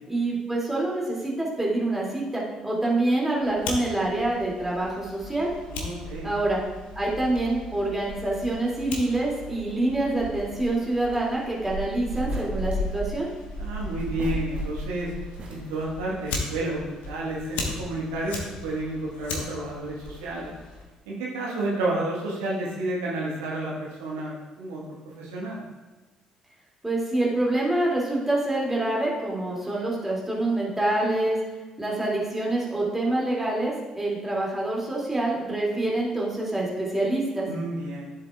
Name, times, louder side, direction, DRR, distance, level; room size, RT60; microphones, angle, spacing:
voice 1, 0.1-5.5 6.2-6.6 7.0-13.3 26.8-31.4 31.8-37.5, right 2 dB, 10° right, -4 dB, 2.7 m, -26 dB
Fire, 3.4-20.8, left 1 dB, 60° left, 1.4 m, -36 dB
voice 2, 5.7-6.3 13.6-15.1 15.5-20.5 21.0-24.8 25.2-25.6 37.5-38.1, right 1 dB, 70° right, -4 dB, 1.6 m, -31 dB
sound 1, 12.1-12.9 14.0-15.0 15.3-16.0, right 1 dB, 40° right, 1.4 m, -43 dB
13.5 x 7.5 x 2.4 m, 1.2 s
figure-of-eight pair, 45°, 3 cm